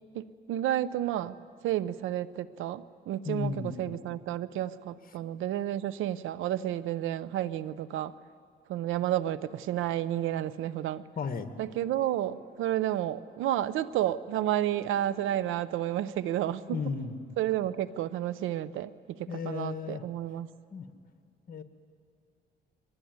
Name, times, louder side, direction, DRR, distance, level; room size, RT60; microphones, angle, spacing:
voice 1, 0.1-1.4 1.6-8.1 8.7-11.0 11.6-16.8 17.4-20.5, right 12 dB, 90° right, 16 dB, 0.7 m, -31 dB
voice 2, 3.2-3.8 11.2-11.5 16.7-17.2 19.3-20.0 20.7-20.9 21.5-21.6, left 5 dB, 45° left, 8 dB, 1.8 m, -34 dB
Brass instrument, 11.6-15.8, right 2 dB, 35° right, 4.6 m, -56 dB
22.5 x 20.0 x 9.5 m, 2.3 s
cardioid pair, 90°, 20 cm